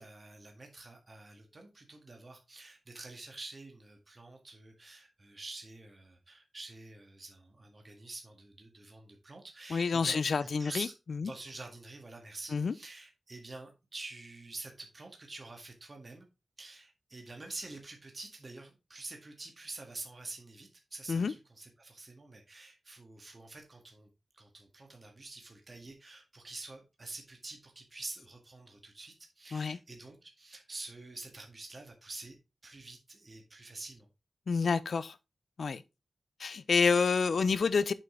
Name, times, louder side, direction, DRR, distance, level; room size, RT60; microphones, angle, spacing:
voice 1, 0.0-10.9 11.2-16.3 16.6-24.1 24.3-32.4 32.6-34.1, right 2 dB, 35° right, 1.8 m, -47 dB
voice 2, 9.7-11.3 12.5-12.7 21.1-21.3 29.5-29.8 34.5-35.2 35.6-35.8 36.4-37.9, left 5 dB, 65° left, 0.5 m, -28 dB
7.5 x 5.5 x 3.8 m
wide cardioid pair, 130°, 0 cm